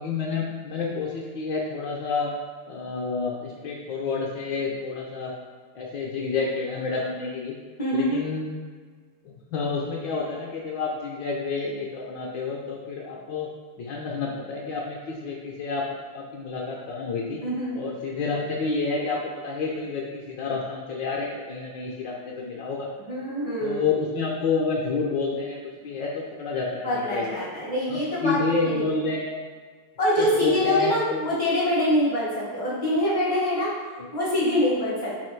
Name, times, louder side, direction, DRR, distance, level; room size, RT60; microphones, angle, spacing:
voice 1, 0.0-2.3 2.7-5.3 5.7-7.5 7.9-8.5 9.2-13.5 13.8-17.4 17.7-22.9 23.6-27.4 27.9-29.4 30.2-31.3 34.0-34.1, left 4 dB, 70° left, -2 dB, 1.2 m, -29 dB
voice 2, 7.8-8.2 17.4-17.8 23.1-23.8 26.8-28.8 30.0-35.2, left 1 dB, 35° left, -8 dB, 0.5 m, -25 dB
4.3 x 2.6 x 4.5 m, 1.5 s
omnidirectional pair, 2.4 m